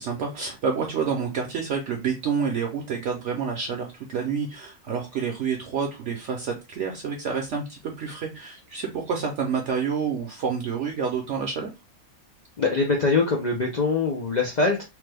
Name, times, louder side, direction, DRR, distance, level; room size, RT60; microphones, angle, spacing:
voice 1, 0.0-11.7, right 6 dB, 65° right, 1 dB, 0.8 m, -28 dB
voice 2, 12.6-14.8, left 3 dB, 75° left, 0 dB, 0.4 m, -23 dB
3.1 x 2.2 x 3.3 m, 0.26 s
omnidirectional pair, 1.5 m